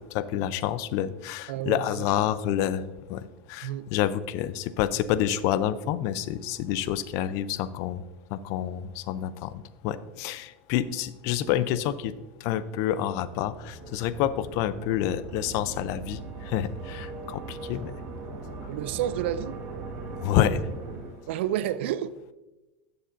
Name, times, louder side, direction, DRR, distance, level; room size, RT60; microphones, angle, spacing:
voice 1, 0.1-2.8 3.1-8.0 8.3-12.1 12.4-17.9 20.2-20.6, left 11 dB, 55° left, 0.5 m, -28 dB
voice 2, 1.5-2.1 3.6-3.9 18.6-19.6 21.3-22.3, right 11 dB, 75° right, 0.4 m, -30 dB
sound 1, 13.2-21.7, right 3 dB, 45° right, 1.7 m, -40 dB
11.0 x 6.9 x 2.6 m
supercardioid pair, 110°, 6 cm